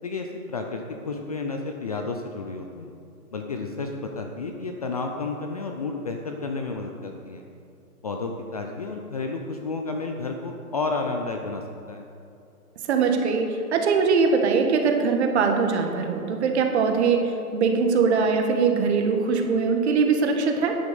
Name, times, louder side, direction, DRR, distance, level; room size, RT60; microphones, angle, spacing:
voice 1, 0.0-2.9 3.3-7.4 8.0-11.6 11.9-12.0, left 3 dB, 25° left, 3 dB, 0.5 m, -31 dB
voice 2, 12.9-20.8, right 5 dB, 45° right, 4 dB, 1.7 m, -22 dB
9.9 x 8.2 x 6.9 m, 2.6 s
hypercardioid pair, 140°, 46 cm